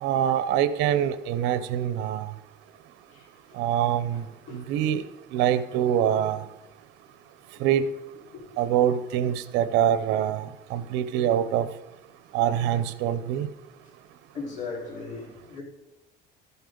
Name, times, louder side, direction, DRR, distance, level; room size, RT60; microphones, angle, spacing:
voice 1, 0.0-2.3 3.6-4.2 4.5-5.0 5.3-6.4 7.6-7.9 8.6-11.7 12.3-13.5, right 10 dB, 85° right, 0.8 m, -24 dB
voice 2, 4.1-4.7 8.3-8.4 13.8-13.9 14.3-15.6, left 4 dB, 40° left, 4.2 m, -38 dB
13.0 x 11.0 x 3.9 m
cardioid pair, 145°, 18 cm